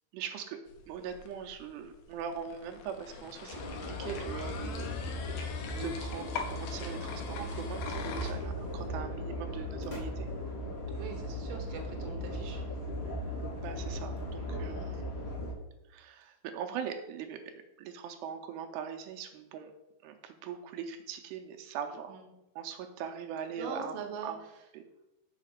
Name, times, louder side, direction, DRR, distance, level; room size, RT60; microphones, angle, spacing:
voice 1, 0.1-0.6 0.9-5.3 5.8-10.3 13.6-14.8 15.9-17.5 17.8-19.7 20.0-22.2 22.6-23.9 24.2-24.4 24.7-24.8, right 7 dB, 85° right, 5 dB, 2.7 m, -41 dB
sound 1, 0.7-8.3, left 6 dB, 85° left, 3.0 m, -44 dB
sound 2, 3.3-8.9, left 4 dB, 70° left, 1.8 m, -51 dB
sound 3, 3.5-15.5, left 1 dB, 20° left, 1.6 m, -37 dB
voice 2, 10.9-12.6 14.6-15.0 22.1-22.3 23.6-24.3, right 5 dB, 60° right, 1 dB, 1.7 m, -42 dB
6.5 x 5.0 x 6.5 m, 0.93 s
omnidirectional pair, 4.8 m